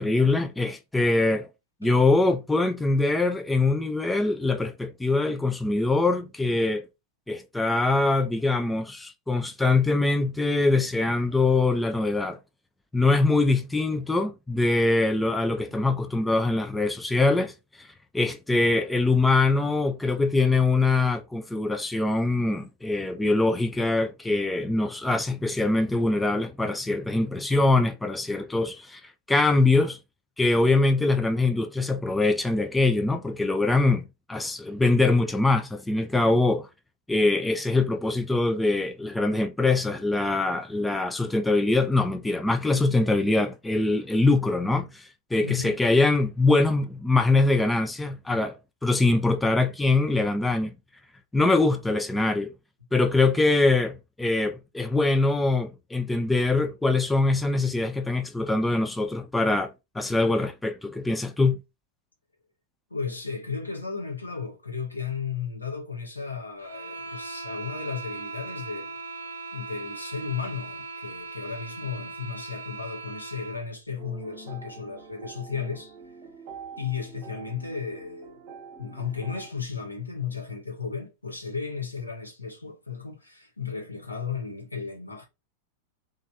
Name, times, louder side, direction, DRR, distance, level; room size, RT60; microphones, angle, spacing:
voice 1, 0.0-1.5 1.8-6.8 7.3-12.4 12.9-17.9 18.1-30.0 30.4-36.7 37.1-48.5 48.8-50.7 51.3-52.5 52.9-61.6, left 2 dB, 5° left, 0.3 m, -23 dB
voice 2, 45.4-45.8 62.9-69.0 69.5-76.0 76.8-78.4 78.8-85.3, left 6 dB, 85° left, 0.9 m, -34 dB
sound 1, 66.6-73.7, right 4 dB, 80° right, 0.6 m, -39 dB
sound 2, 74.0-79.5, right 5 dB, 45° right, 0.9 m, -45 dB
3.0 x 2.4 x 2.6 m
figure-of-eight pair, 90°, 0 cm